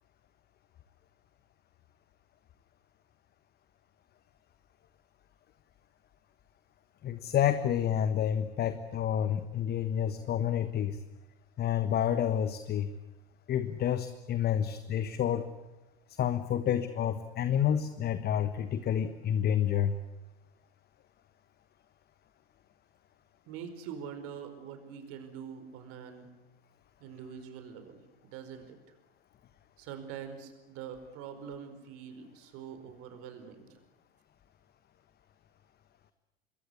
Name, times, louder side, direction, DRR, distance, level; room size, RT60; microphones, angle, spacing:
voice 1, 7.0-11.0 11.6-12.9 13.5-15.5 16.2-20.0, left 9 dB, 30° left, 12 dB, 1.4 m, -29 dB
voice 2, 23.5-26.3 27.0-28.8 29.8-33.7, right 7 dB, 50° right, 8 dB, 5.0 m, -44 dB
27.0 x 21.5 x 8.4 m, 1.0 s
figure-of-eight pair, 75°, 30 cm